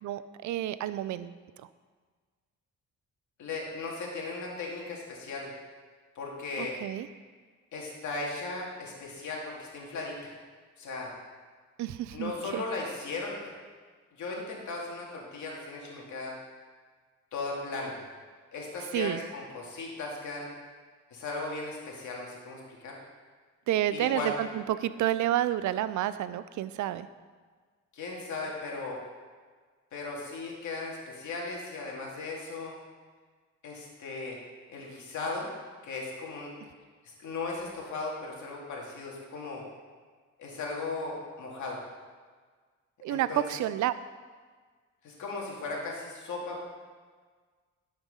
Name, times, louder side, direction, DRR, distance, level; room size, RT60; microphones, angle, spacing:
voice 1, 0.0-1.3 6.6-7.1 11.8-12.6 18.9-19.2 23.7-27.1 43.0-43.9, right 12 dB, 75° right, 14 dB, 0.6 m, -30 dB
voice 2, 3.4-5.5 6.1-6.8 7.7-10.3 10.8-11.1 12.1-13.5 14.1-16.3 17.3-18.0 18.5-20.5 21.1-23.0 23.9-24.3 27.9-29.0 29.9-32.8 33.6-34.4 34.7-35.5 35.8-36.5 37.0-39.6 40.4-41.8 43.1-43.4 45.0-46.6, left 3 dB, 75° left, -2 dB, 2.5 m, -37 dB
12.0 x 5.2 x 5.5 m, 1.5 s
cardioid pair, 90°, 30 cm